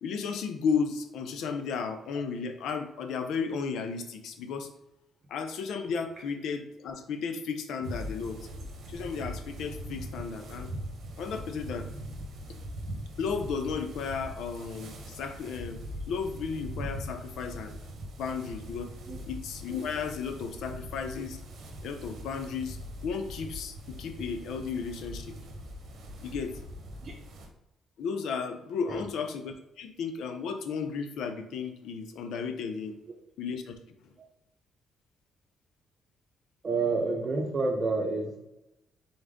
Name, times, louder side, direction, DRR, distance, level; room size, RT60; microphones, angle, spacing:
voice 1, 0.0-4.7 5.3-8.4 8.9-10.7 11.2-11.9 13.2-17.7 18.2-18.9 19.3-21.4 21.8-22.8 23.0-25.3 26.2-26.6 28.0-33.0 33.4-33.7, left 5 dB, 80° left, 7 dB, 0.6 m, -34 dB
sound 1, 7.8-27.5, equal, 65° right, 1.0 m, -41 dB
voice 2, 36.6-38.4, right 3 dB, 40° right, -1 dB, 0.9 m, -29 dB
3.9 x 3.4 x 3.7 m, 0.92 s
cardioid pair, 90°, 0 cm